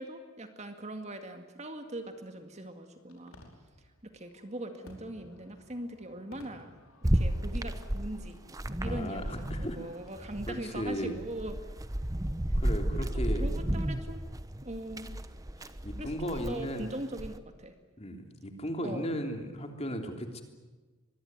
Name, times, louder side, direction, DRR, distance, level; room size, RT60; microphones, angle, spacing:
voice 1, 0.0-3.4 4.0-6.7 7.1-8.4 8.7-11.5 12.5-12.6 13.0-14.2 14.6-15.1 16.0-17.7 18.8-19.2, right 1 dB, 30° right, 6 dB, 2.1 m, -41 dB
Fireworks, 1.8-10.2, left 1 dB, 75° left, 5.3 m, -58 dB
sound 1, 7.0-9.9 10.1-17.4, right 1 dB, 15° right, 1.0 m, -32 dB
voice 2, 8.9-9.9 10.5-11.2 12.5-13.6 15.6-16.9 18.0-20.4, equal, 30° left, 4 dB, 3.3 m, -36 dB
25.5 x 21.5 x 9.6 m, 1.3 s
head